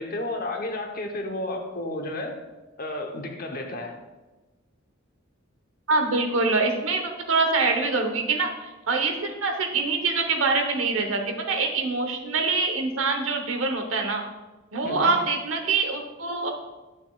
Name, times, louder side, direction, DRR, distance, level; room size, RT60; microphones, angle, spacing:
voice 1, 0.0-2.4 2.8-4.0 14.8-15.2, left 1 dB, 45° left, 4 dB, 0.9 m, -32 dB
voice 2, 5.9-14.2 14.7-16.5, right 3 dB, 90° right, 4 dB, 1.0 m, -25 dB
10.5 x 6.4 x 2.4 m, 1.2 s
head